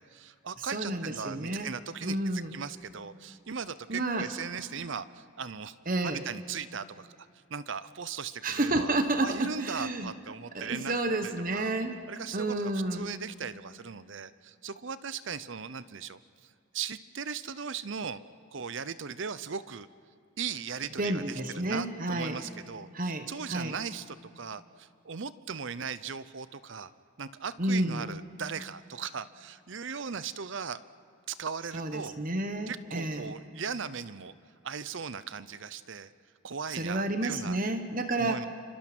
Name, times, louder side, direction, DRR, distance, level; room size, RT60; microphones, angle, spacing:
voice 1, 0.0-5.8 6.0-10.9 11.2-11.7 12.1-18.2 18.5-19.9 20.4-26.9 27.2-30.8 31.3-32.2 32.7-34.3 34.6-36.1 36.4-37.6 38.2-38.5, right 6 dB, 60° right, 15 dB, 0.7 m, -38 dB
voice 2, 0.6-1.7 2.0-2.5 3.9-4.3 5.9-6.2 8.4-10.1 10.5-12.0 12.3-13.1 21.0-22.4 22.9-23.7 27.6-28.2 31.7-33.3 36.7-38.5, right 2 dB, 40° right, 7 dB, 1.2 m, -30 dB
28.5 x 25.5 x 6.1 m, 2.4 s
head